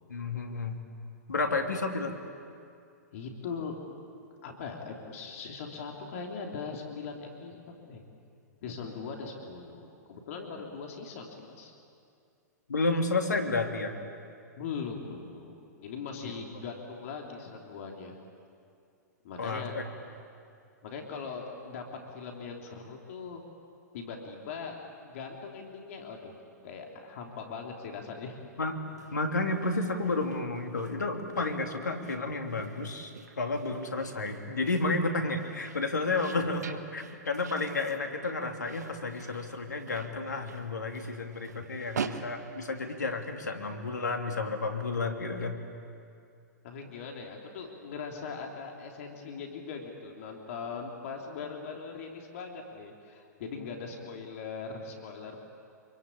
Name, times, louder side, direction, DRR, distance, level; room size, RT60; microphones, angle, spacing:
voice 1, 0.1-0.8 1.3-2.1 12.7-14.0 16.2-16.3 19.4-19.8 28.6-28.7 29.1-33.1 33.4-45.6, left 3 dB, 80° left, 4 dB, 2.9 m, -31 dB
voice 2, 3.1-3.7 4.4-7.6 7.9-8.0 8.6-11.7 14.6-18.2 19.2-19.7 20.8-23.4 23.9-26.3 26.6-28.4 46.6-55.5, left 5 dB, 55° left, 1 dB, 3.5 m, -40 dB
sound 1, 28.9-43.4, right 6 dB, 70° right, 1.4 m, -45 dB
26.5 x 23.5 x 8.6 m, 2.4 s
figure-of-eight pair, 110°, 9 cm